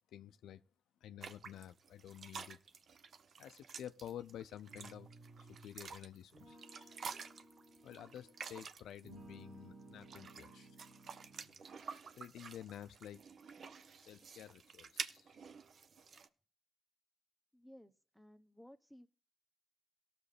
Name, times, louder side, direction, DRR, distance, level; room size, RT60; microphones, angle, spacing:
voice 1, 0.1-0.6 1.0-2.6 3.4-5.1 5.4-7.0 7.8-10.8 12.2-13.2 14.0-15.4, left 10 dB, 85° left, 0.4 m, -51 dB
sound 1, 1.2-9.1 9.8-16.3, right 5 dB, 65° right, 0.7 m, -50 dB
sound 2, 4.7-5.8 6.3-8.6 9.0-11.6, right 2 dB, 90° right, 2.2 m, -58 dB
voice 2, 17.5-19.1, equal, 5° right, 1.0 m, -58 dB
18.0 x 6.7 x 3.3 m
supercardioid pair, 45°, 0 cm